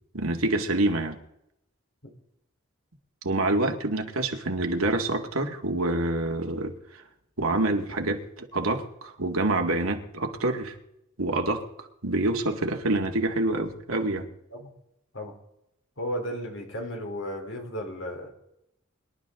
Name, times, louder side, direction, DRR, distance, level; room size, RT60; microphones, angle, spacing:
voice 1, 0.1-1.2 3.2-6.7 7.4-10.8 11.2-11.6 12.0-14.3, right 2 dB, 90° right, 3 dB, 2.1 m, -26 dB
voice 2, 16.0-18.3, equal, 65° left, 1 dB, 3.6 m, -34 dB
24.5 x 11.5 x 3.8 m, 0.81 s
head